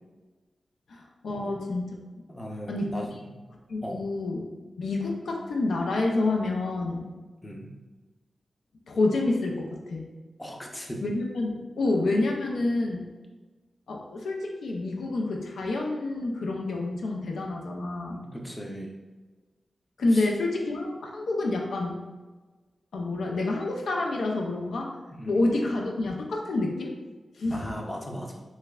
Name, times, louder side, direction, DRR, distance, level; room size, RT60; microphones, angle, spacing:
voice 1, 0.9-2.0 2.7-2.9 3.7-4.5 4.8-7.1 8.9-10.1 11.0-13.1 13.9-18.2 20.0-22.0 22.9-25.0 25.3-26.9 27.3-27.7, left 2 dB, 90° left, 0 dB, 0.4 m, -28 dB
voice 2, 2.3-3.1 3.8-4.0 7.4-7.7 10.4-11.1 18.1-19.0 20.1-20.2 25.1-25.4 27.5-28.4, equal, 20° left, 0 dB, 0.6 m, -38 dB
5.6 x 2.1 x 2.3 m, 1.3 s
cardioid pair, 60°, 0 cm